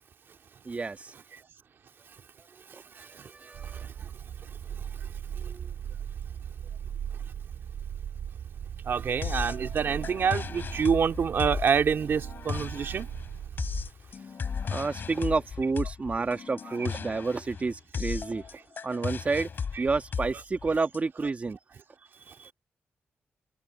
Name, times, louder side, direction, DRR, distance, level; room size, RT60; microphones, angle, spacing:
voice 1, 0.7-1.1 2.5-3.9 5.4-5.7 14.7-18.6 18.8-19.5 19.8-21.6 22.4-22.5, right 4 dB, 35° right, 1.9 m, -30 dB
sound 1, 3.5-13.9, right 9 dB, 90° right, 6.6 m, -38 dB
voice 2, 8.9-10.4 10.7-12.2 12.5-13.0, right 7 dB, 65° right, 2.3 m, -26 dB
sound 2, 9.2-21.0, left 6 dB, 55° left, 4.4 m, -36 dB
cardioid pair, 95°, 4 cm